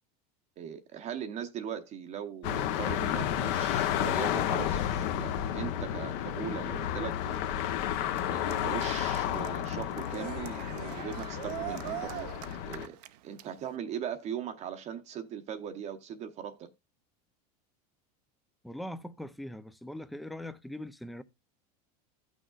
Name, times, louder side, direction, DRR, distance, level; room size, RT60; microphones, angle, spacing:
voice 1, 0.6-7.4 8.3-12.3 12.6-13.0 13.2-16.7, right 8 dB, 35° right, 0.7 m, -39 dB
sound 1, 2.4-12.9, left 10 dB, 55° left, 0.8 m, -32 dB
Cheering, 6.7-13.8, right 16 dB, 80° right, 0.7 m, -44 dB
voice 2, 18.6-21.2, left 1 dB, ahead, 0.4 m, -41 dB
15.0 x 6.2 x 2.3 m
supercardioid pair, 140°, 20 cm